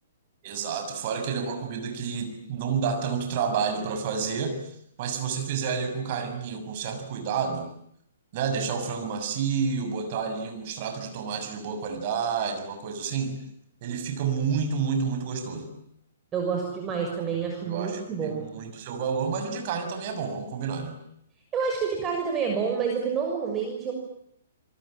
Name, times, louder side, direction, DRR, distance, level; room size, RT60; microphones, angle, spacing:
voice 1, 0.4-4.6 5.0-7.7 8.3-13.4 13.8-15.7 17.6-21.0, right 6 dB, 45° right, 6 dB, 6.8 m, -29 dB
voice 2, 16.3-18.5 21.5-23.9, right 6 dB, 20° right, 1 dB, 6.3 m, -28 dB
27.5 x 23.0 x 9.0 m, 0.74 s
figure-of-eight pair, 120°, 0 cm